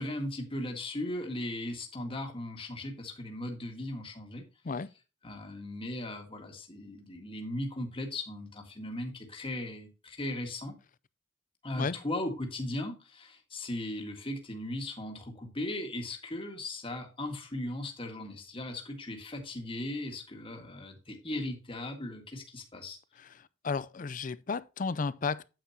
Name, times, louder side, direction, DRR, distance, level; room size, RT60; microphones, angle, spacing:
voice 1, 0.0-4.4 5.2-10.8 11.6-23.0, left 1 dB, 30° left, 1.8 m, -37 dB
voice 2, 23.2-25.5, left 4 dB, 45° left, 0.5 m, -33 dB
9.2 x 8.6 x 2.8 m
head